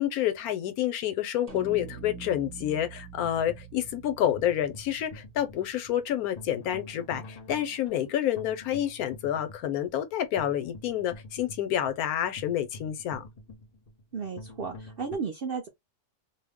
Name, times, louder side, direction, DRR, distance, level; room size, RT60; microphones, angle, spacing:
voice 1, 0.0-13.2, left 11 dB, 80° left, 1.1 m, -29 dB
sound 1, 1.5-6.0, right 4 dB, 30° right, 0.8 m, -45 dB
sound 2, 3.2-15.2, left 2 dB, 55° left, 0.4 m, -47 dB
voice 2, 14.1-15.7, right 5 dB, 60° right, 0.6 m, -34 dB
2.7 x 2.0 x 3.4 m
omnidirectional pair, 1.6 m